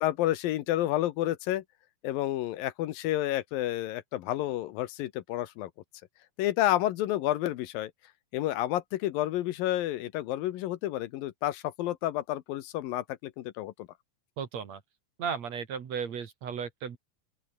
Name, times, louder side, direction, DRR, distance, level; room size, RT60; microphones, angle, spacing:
voice 1, 0.0-1.6 2.0-5.7 6.4-7.9 8.3-13.9, left 14 dB, 75° left, 2.6 m, -30 dB
voice 2, 14.4-14.8 15.2-17.0, right 7 dB, 50° right, 3.0 m, -35 dB
open air
omnidirectional pair, 4.2 m